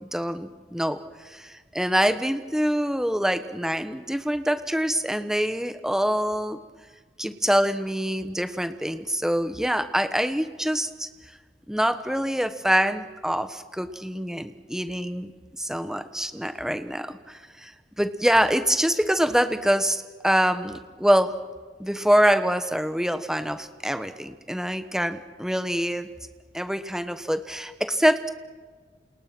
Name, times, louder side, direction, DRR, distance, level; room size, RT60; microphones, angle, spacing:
voice 1, 0.0-6.6 7.2-11.1 11.7-15.3 15.6-17.7 18.0-21.3 21.8-26.1 26.5-28.3, equal, 5° right, 10 dB, 1.3 m, -25 dB
29.5 x 28.0 x 6.2 m, 1.4 s
head